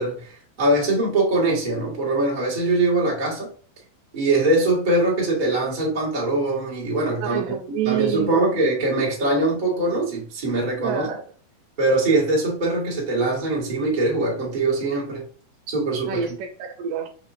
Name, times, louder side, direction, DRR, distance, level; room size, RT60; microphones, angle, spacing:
voice 1, 0.0-3.5 4.1-7.4 7.8-11.1 11.8-15.2 15.7-16.2, right 2 dB, 25° right, 1.0 m, -22 dB
voice 2, 7.2-8.5 10.8-11.2 16.1-17.1, right 9 dB, 80° right, 2.1 m, -27 dB
6.2 x 2.9 x 2.5 m
omnidirectional pair, 4.1 m